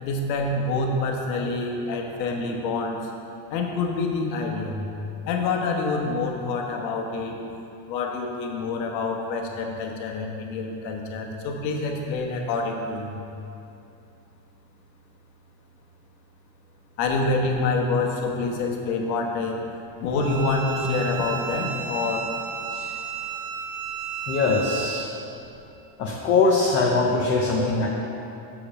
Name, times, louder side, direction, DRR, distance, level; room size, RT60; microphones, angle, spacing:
voice 1, 0.0-3.1 3.5-4.8 5.3-7.4 7.9-13.1 17.0-19.6 20.0-22.3, left 3 dB, 85° left, 1 dB, 1.4 m, -27 dB
Bowed string instrument, 20.2-25.1, right 7 dB, 70° right, 0.7 m, -33 dB
voice 2, 24.3-25.1 26.0-27.9, left 3 dB, 25° left, -3 dB, 0.5 m, -22 dB
7.1 x 5.1 x 7.0 m, 2.8 s
cardioid pair, 170°, 50 cm